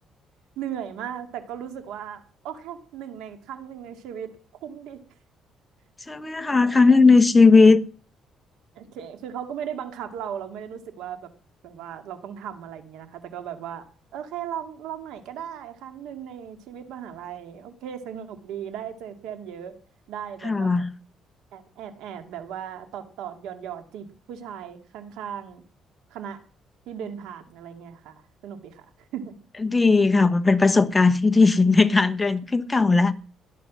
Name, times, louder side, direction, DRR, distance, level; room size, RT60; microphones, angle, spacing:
voice 1, 0.6-4.4 4.6-5.0 6.6-7.0 8.7-11.3 11.6-13.9 14.1-19.7 20.1-20.8 21.5-25.6 26.1-26.4 26.9-28.1 28.4-28.9 29.1-29.3, right 9 dB, 90° right, 2.3 m, -37 dB
voice 2, 6.1-7.8 20.4-20.9 29.6-33.1, left 4 dB, 15° left, 1.1 m, -17 dB
16.5 x 11.0 x 6.3 m
cardioid pair, 110°, 0 cm